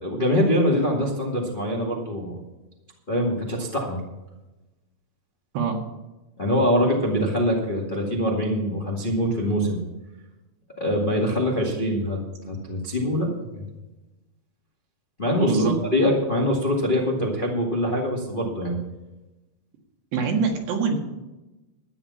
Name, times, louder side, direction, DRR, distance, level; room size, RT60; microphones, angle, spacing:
voice 1, 0.0-2.3 3.1-4.0 6.4-9.8 10.8-12.2 12.4-13.6 15.2-18.8, equal, 55° left, -2 dB, 0.5 m, -24 dB
voice 2, 15.4-15.8 20.1-21.0, right 5 dB, 75° right, 2 dB, 3.9 m, -24 dB
13.0 x 9.7 x 5.7 m, 1.0 s
omnidirectional pair, 5.0 m